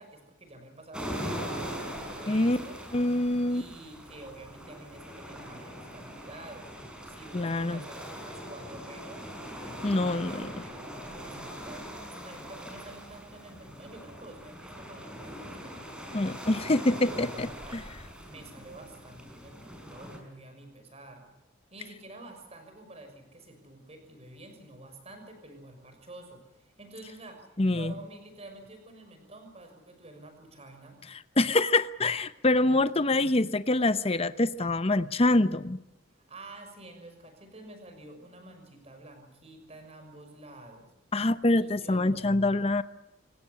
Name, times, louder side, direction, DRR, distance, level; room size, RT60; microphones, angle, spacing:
voice 1, 0.0-2.8 3.5-6.7 7.0-9.3 9.6-21.3 21.7-31.0 36.1-40.9 41.5-42.3, right 2 dB, 35° right, 6 dB, 6.3 m, -49 dB
sound 1, 0.9-20.2, equal, 5° right, 5.4 m, -41 dB
voice 2, 2.3-2.6 2.9-3.6 7.3-7.8 9.8-10.5 16.1-17.8 27.6-27.9 31.4-35.8 41.1-42.8, left 2 dB, 30° left, 13 dB, 0.8 m, -25 dB
26.5 x 18.0 x 9.8 m, 0.92 s
head